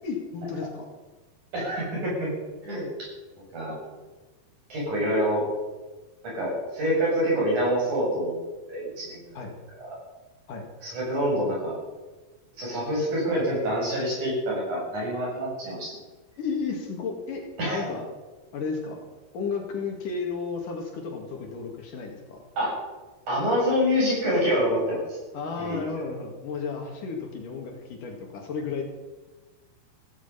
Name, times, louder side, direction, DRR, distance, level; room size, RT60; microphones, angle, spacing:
voice 1, 0.0-0.9 9.4-9.5 10.5-10.7 16.4-17.4 17.7-18.1 18.5-19.0 19.3-22.4 25.3-28.8, left 5 dB, 65° left, 2 dB, 3.5 m, -33 dB
voice 2, 1.5-2.3 2.6-2.9 3.5-3.8 4.7-5.5 6.2-8.4 8.7-9.2 9.8-10.0 10.8-11.8 12.6-15.9 17.6-17.8 22.6-22.7 23.3-25.2 25.6-25.8, equal, 50° right, -4 dB, 8.9 m, -26 dB
16.5 x 15.0 x 5.8 m, 1.2 s
omnidirectional pair, 4.3 m